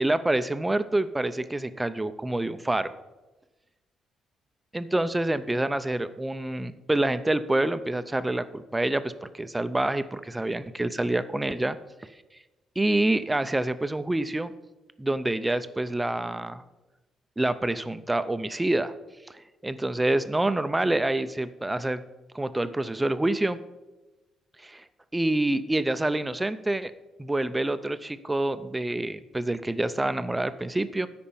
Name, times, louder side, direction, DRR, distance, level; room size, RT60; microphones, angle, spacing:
voice 1, 0.0-2.9 4.7-11.8 12.8-14.5 15.0-16.6 17.4-18.9 19.6-22.0 22.3-23.6 24.6-24.8 25.1-26.9 27.2-31.1, right 1 dB, 15° right, 12 dB, 0.5 m, -27 dB
8.7 x 5.2 x 7.1 m, 1.1 s
cardioid pair, 90°, 0 cm